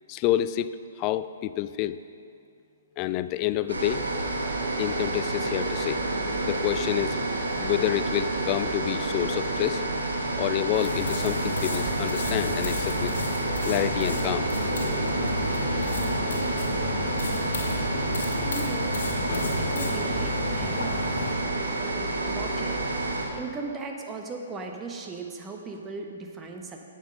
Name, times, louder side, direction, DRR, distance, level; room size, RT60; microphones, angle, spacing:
voice 1, 0.1-2.0 3.0-4.0 4.8-6.0 6.4-7.2 7.6-9.8 10.4-13.1 13.6-14.5, left 13 dB, 30° left, 14 dB, 0.4 m, -28 dB
sound 1, 3.7-23.2, right 2 dB, 90° right, 2.1 m, -29 dB
sound 2, 10.7-21.4, left 2 dB, 65° left, 2.0 m, -31 dB
voice 2, 17.2-17.8 18.4-19.0 19.6-20.9 21.8-26.8, right 3 dB, 15° right, 2 dB, 1.1 m, -38 dB
10.5 x 8.1 x 5.3 m, 2.4 s
hypercardioid pair, 130°, 0 cm